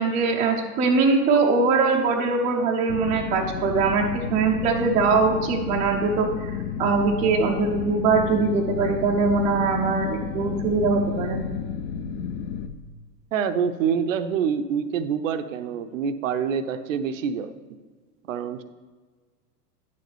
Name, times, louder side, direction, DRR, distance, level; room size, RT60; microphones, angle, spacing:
voice 1, 0.0-11.4, right 4 dB, 15° right, 0 dB, 0.5 m, -22 dB
sound 1, 2.9-12.7, left 7 dB, 45° left, 0.5 m, -32 dB
voice 2, 13.3-17.5 18.3-18.6, right 7 dB, 55° right, 11 dB, 0.6 m, -26 dB
9.9 x 6.7 x 3.3 m, 1.4 s
figure-of-eight pair, 100°, 47 cm